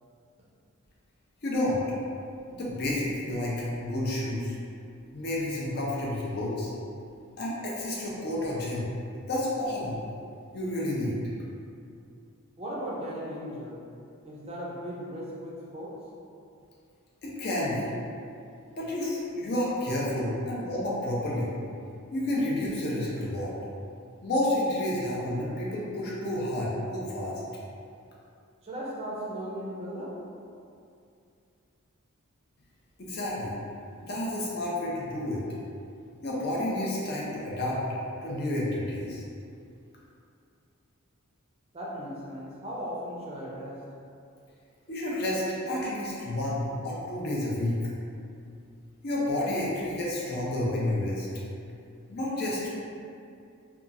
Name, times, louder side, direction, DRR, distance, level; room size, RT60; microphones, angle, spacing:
voice 1, 1.4-1.8 2.5-4.5 5.1-6.7 7.4-8.9 9.3-10.0 10.5-11.2 17.2-17.9 18.8-21.5 22.1-23.5 24.2-27.3 33.0-33.5 34.0-35.4 36.2-37.8 38.2-39.2 44.9-47.8 49.0-51.3 52.1-52.7, left 1 dB, 45° left, -5 dB, 0.5 m, -30 dB
voice 2, 12.6-13.8 14.2-15.9 28.6-30.1 41.7-43.8, equal, 30° right, -5 dB, 0.4 m, -37 dB
2.8 x 2.3 x 2.5 m, 2.5 s
head